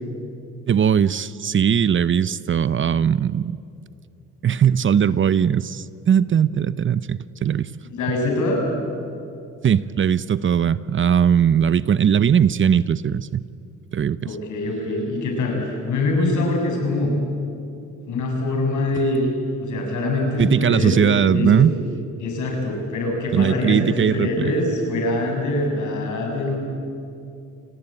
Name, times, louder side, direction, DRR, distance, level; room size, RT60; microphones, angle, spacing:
voice 1, 0.7-3.6 4.4-7.7 9.6-13.4 13.9-14.2 20.4-21.7 23.3-24.5, right 8 dB, 40° right, 17 dB, 0.7 m, -19 dB
voice 2, 7.8-8.6 14.2-17.1 18.1-19.3 19.6-21.6 22.2-26.6, left 2 dB, 75° left, 2 dB, 7.3 m, -24 dB
28.0 x 19.5 x 8.9 m, 2.5 s
cardioid pair, 90°, 30 cm